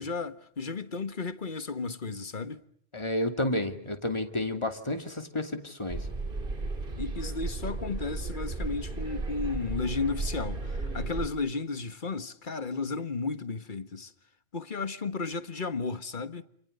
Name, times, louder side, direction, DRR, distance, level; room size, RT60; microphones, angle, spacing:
voice 1, 0.0-2.6 7.0-14.1 14.5-16.4, left 4 dB, 50° left, 1.6 m, -34 dB
voice 2, 2.9-6.1, left 1 dB, 25° left, 2.8 m, -31 dB
sound 1, 5.9-11.3, right 3 dB, 55° right, 2.4 m, -34 dB
29.0 x 28.5 x 6.8 m
omnidirectional pair, 1.1 m